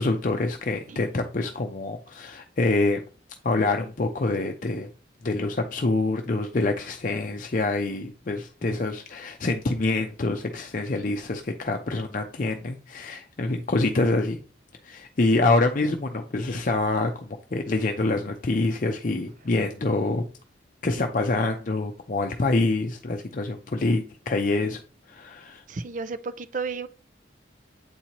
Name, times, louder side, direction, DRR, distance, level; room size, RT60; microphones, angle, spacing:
voice 1, 0.0-3.0 3.4-4.9 5.2-14.4 14.8-20.2 20.8-24.8 25.1-25.6, left 2 dB, 45° left, 0.6 m, -26 dB
voice 2, 7.3-7.7 25.7-26.9, right 4 dB, 45° right, 0.5 m, -33 dB
8.5 x 4.2 x 3.0 m
head